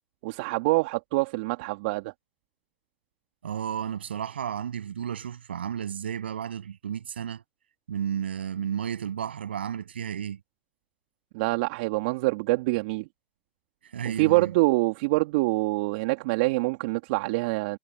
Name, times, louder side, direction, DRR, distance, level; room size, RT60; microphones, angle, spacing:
voice 1, 0.2-2.1 11.3-13.1 14.2-17.8, right 23 dB, 65° right, 2.5 m, -25 dB
voice 2, 3.4-7.4 7.9-10.4 13.9-14.5, right 8 dB, 85° right, 7.7 m, -32 dB
hypercardioid pair, 85°, 6 cm